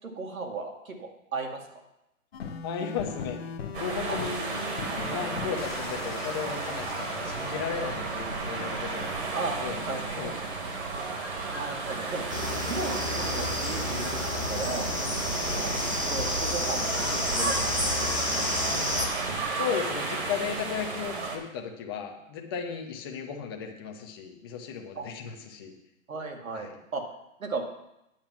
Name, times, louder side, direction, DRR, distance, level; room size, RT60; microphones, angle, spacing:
voice 1, 0.0-1.9 4.1-4.2 4.9-5.3 9.3-9.6 9.8-10.4 11.5-12.2 12.6-14.9 15.6-18.1 25.0-25.1 26.1-27.0 27.4-27.6, right 3 dB, 85° right, 2 dB, 2.2 m, -36 dB
sound 1, 2.3-7.6, left 5 dB, 50° left, 0.8 m, -39 dB
voice 2, 2.6-3.4 3.8-4.4 5.0-9.2 9.6-10.3 15.5-15.7 19.5-25.7 26.5-26.8, left 7 dB, 20° left, 2 dB, 0.8 m, -35 dB
sound 2, 3.7-21.4, right 3 dB, 50° right, 2.3 m, -33 dB
sound 3, 12.3-19.1, left 2 dB, 15° right, 0.4 m, -30 dB
9.1 x 7.2 x 5.9 m, 0.86 s
hypercardioid pair, 160°, 40 cm